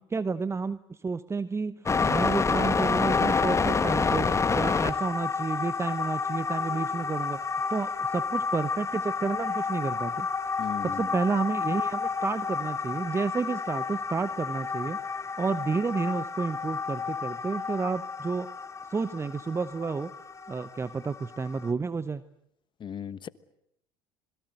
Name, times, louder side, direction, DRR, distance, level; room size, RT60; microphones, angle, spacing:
voice 1, 0.0-4.3 4.5-10.3 10.5-18.5 18.9-20.1 20.5-22.2, right 4 dB, 20° right, 0.9 m, -31 dB
sound 1, 1.9-21.7, left 5 dB, 25° left, 1.9 m, -29 dB
voice 2, 10.6-11.0 22.8-23.3, left 8 dB, 40° left, 1.3 m, -36 dB
26.5 x 22.0 x 7.9 m
hypercardioid pair, 75°, 13 cm